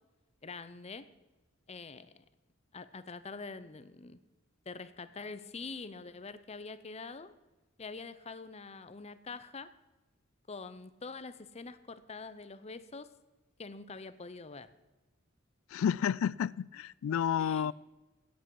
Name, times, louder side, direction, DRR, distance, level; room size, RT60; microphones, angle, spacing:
voice 1, 0.4-1.1 1.7-2.1 2.7-4.2 4.7-7.3 7.8-9.7 10.5-13.1 13.6-14.7 17.4-17.7, left 4 dB, 30° left, 0.6 m, -45 dB
voice 2, 15.7-17.7, left 8 dB, 70° left, 0.3 m, -30 dB
17.0 x 8.3 x 4.7 m
head